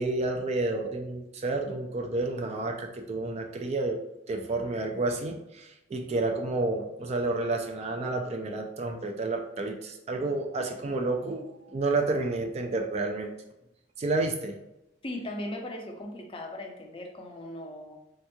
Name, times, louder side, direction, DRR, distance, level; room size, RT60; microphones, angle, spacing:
voice 1, 0.0-4.0 4.3-13.3 14.0-14.6, right 2 dB, 35° right, 3 dB, 0.3 m, -30 dB
voice 2, 15.0-18.0, left 1 dB, 30° left, 1 dB, 0.5 m, -38 dB
3.5 x 2.9 x 2.2 m, 0.88 s
head